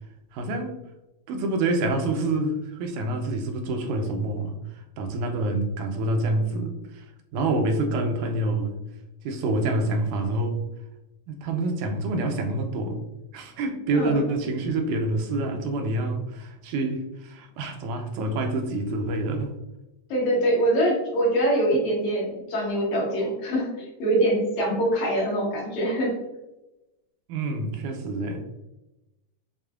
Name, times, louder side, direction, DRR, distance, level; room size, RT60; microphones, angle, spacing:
voice 1, 0.3-0.7 1.3-4.6 5.0-7.0 7.3-8.8 9.2-10.6 11.3-13.0 13.3-19.5 27.3-28.4, right 2 dB, 85° right, 4 dB, 2.0 m, -27 dB
voice 2, 20.1-26.1, right 1 dB, 70° left, -5 dB, 2.6 m, -24 dB
6.4 x 2.4 x 2.3 m, 0.97 s
omnidirectional pair, 3.4 m